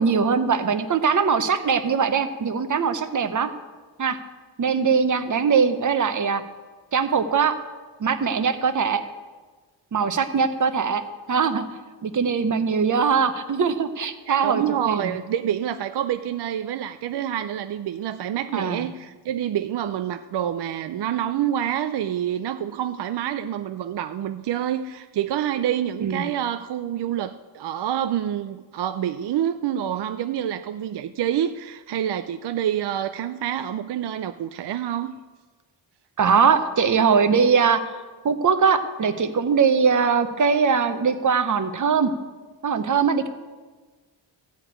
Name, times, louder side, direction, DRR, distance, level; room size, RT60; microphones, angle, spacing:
voice 1, 0.0-3.5 4.0-4.2 4.6-6.4 6.9-7.5 8.0-9.0 9.9-11.0 11.3-11.6 12.0-15.1 18.5-18.8 26.0-26.2 36.2-38.0 38.2-42.1 42.6-43.3, right 6 dB, 40° right, 10 dB, 0.8 m, -21 dB
voice 2, 14.3-35.2, right 10 dB, 60° right, 10 dB, 0.5 m, -27 dB
13.5 x 5.1 x 8.6 m, 1.4 s
wide cardioid pair, 110°, 46 cm